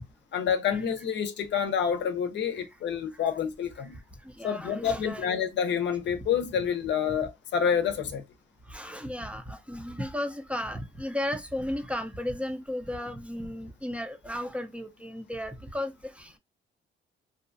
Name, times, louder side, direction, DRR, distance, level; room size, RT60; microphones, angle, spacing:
voice 1, 0.3-4.0 4.4-8.2, left 7 dB, 65° left, 0.6 m, -28 dB
voice 2, 4.2-5.3 8.7-16.4, left 1 dB, 5° right, 0.5 m, -34 dB
2.7 x 2.3 x 2.5 m
cardioid pair, 90°, 20 cm